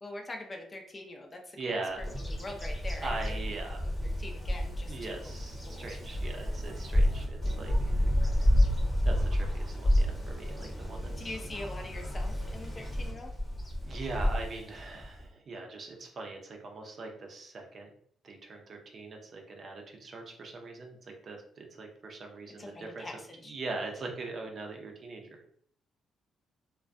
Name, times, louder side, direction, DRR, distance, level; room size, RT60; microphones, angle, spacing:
voice 1, 0.0-1.8 2.2-3.4 3.8-5.3 5.7-5.9 11.2-13.3 22.6-23.5, left 2 dB, 30° left, 2 dB, 0.5 m, -43 dB
voice 2, 1.6-2.0 3.0-4.1 4.9-7.9 8.4-8.5 9.0-11.3 13.8-17.9 18.2-23.0 23.5-25.5, right 3 dB, 50° right, 2 dB, 0.5 m, -41 dB
Bird vocalization bird call bird song, 2.0-15.2, equal, 10° left, 0.8 m, -30 dB
2.3 x 2.1 x 2.5 m, 0.63 s
cardioid pair, 90°, 0 cm